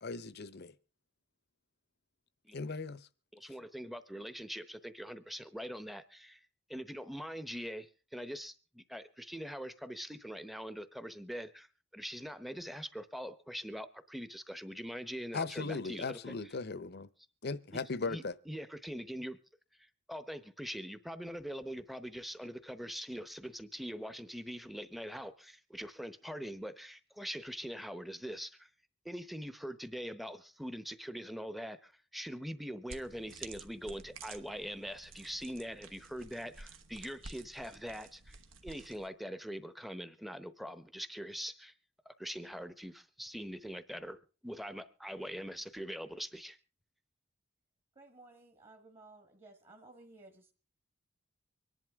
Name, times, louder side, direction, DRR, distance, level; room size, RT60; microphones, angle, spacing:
voice 1, 0.0-0.7 2.5-3.1 15.3-17.1 17.4-18.3, left 4 dB, 50° left, 0.8 m, -38 dB
voice 2, 3.3-6.4 6.7-11.7 11.9-16.4 18.1-19.4 19.8-28.7 29.0-41.7 42.1-46.6, equal, ahead, 0.8 m, -43 dB
sound 1, 32.9-39.1, right 4 dB, 70° right, 1.3 m, -52 dB
voice 3, 47.9-50.5, right 2 dB, 30° right, 1.4 m, -56 dB
24.5 x 11.0 x 3.6 m
head